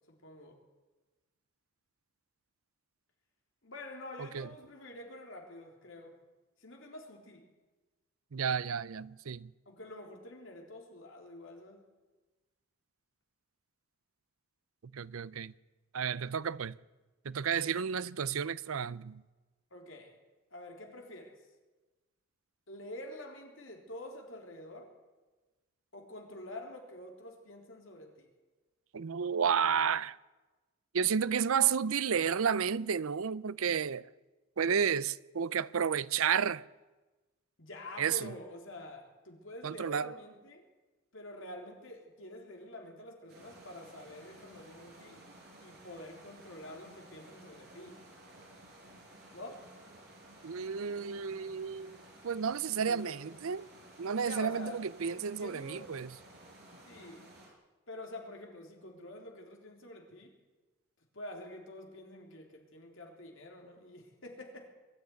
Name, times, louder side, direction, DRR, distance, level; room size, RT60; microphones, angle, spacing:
voice 1, 0.1-0.6 3.6-6.2 6.6-7.4 9.7-11.8 19.7-20.1 20.5-21.4 22.7-24.9 25.9-28.3 37.6-40.6 41.1-45.2 45.6-48.0 49.3-49.6 52.7-53.2 54.2-54.8 55.1-55.9 56.9-57.3 57.9-60.3 61.1-64.7, left 1 dB, 60° left, 3.7 m, -47 dB
voice 2, 4.2-4.5 8.3-9.5 14.9-15.5 15.9-16.8 17.2-19.2 28.9-30.2 30.9-34.1 34.6-36.6 38.0-38.3 39.6-40.1 50.4-52.0 52.2-53.7 54.0-56.1, right 7 dB, 75° right, 0.6 m, -31 dB
sound 1, 43.3-57.5, right 1 dB, 45° right, 5.9 m, -55 dB
22.5 x 12.5 x 9.6 m
head